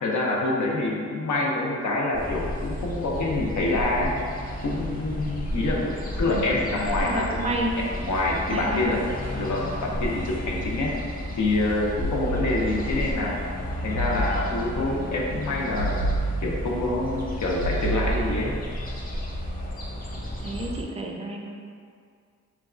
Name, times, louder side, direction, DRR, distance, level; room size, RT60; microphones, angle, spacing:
voice 1, 0.0-4.1 4.6-5.9 6.2-9.0 9.3-10.9 11.4-13.4 13.8-16.1 16.4-18.6, left 2 dB, 75° left, -2 dB, 0.6 m, -26 dB
sound 1, 2.1-20.8, left 1 dB, 30° left, 0.5 m, -33 dB
voice 2, 6.8-7.7 8.5-9.0 9.3-9.5 20.4-21.5, right 1 dB, 20° right, 0 dB, 0.3 m, -31 dB
sound 2, 12.0-13.0 14.0-14.9 15.8-16.9 17.6-18.7, right 2 dB, 70° right, 0.6 m, -30 dB
3.9 x 2.3 x 2.4 m, 2.2 s
wide cardioid pair, 85°, 30 cm